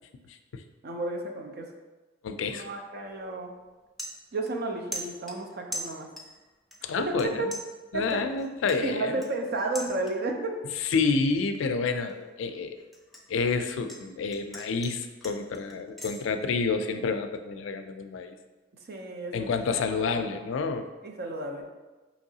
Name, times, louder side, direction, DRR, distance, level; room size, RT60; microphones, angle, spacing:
voice 1, 0.3-0.6 2.2-2.7 6.8-7.5 7.9-9.2 10.8-12.8 13.3-18.4 19.3-20.9, left 4 dB, 75° left, 7 dB, 0.3 m, -29 dB
voice 2, 0.8-1.7 2.5-3.5 4.3-6.1 7.0-7.5 7.9-8.3 8.8-10.6 18.8-20.2 21.0-21.6, right 2 dB, 55° right, 3 dB, 0.5 m, -32 dB
sound 1, 3.1-3.3 3.6-4.7 4.9-6.4 6.7-7.2 7.5-10.4 10.8-11.1 11.5-14.0 14.3-16.2, equal, ahead, 0.4 m, -41 dB
4.6 x 3.0 x 2.7 m, 1.2 s
head